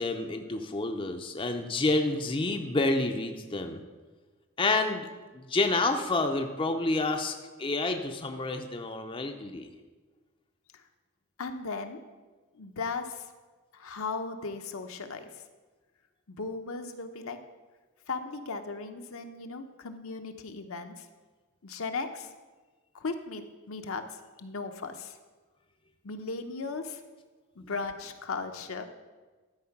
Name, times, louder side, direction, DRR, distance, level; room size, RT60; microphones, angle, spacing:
voice 1, 0.0-3.8 4.6-9.7, left 2 dB, 25° left, 5 dB, 0.5 m, -29 dB
voice 2, 11.4-12.0 12.5-13.3 13.7-15.3 16.3-17.4 18.1-21.1 21.6-22.3 22.9-24.0 24.4-25.2 26.0-27.0 27.6-28.8, left 4 dB, 70° left, 6 dB, 0.7 m, -36 dB
12.0 x 4.7 x 5.9 m, 1.3 s
head